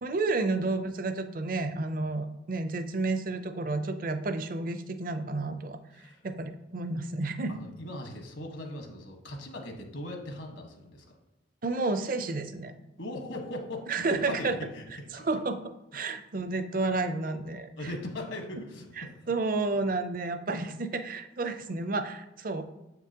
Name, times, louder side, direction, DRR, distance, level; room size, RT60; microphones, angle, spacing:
voice 1, 0.0-7.5 11.6-12.7 13.9-14.6 15.1-15.6 15.9-17.7 19.0-22.6, right 3 dB, 45° right, 9 dB, 0.5 m, -31 dB
voice 2, 7.5-11.1 13.0-15.3 17.8-19.3, left 1 dB, 75° left, 2 dB, 1.4 m, -39 dB
7.7 x 5.9 x 2.9 m, 0.98 s
head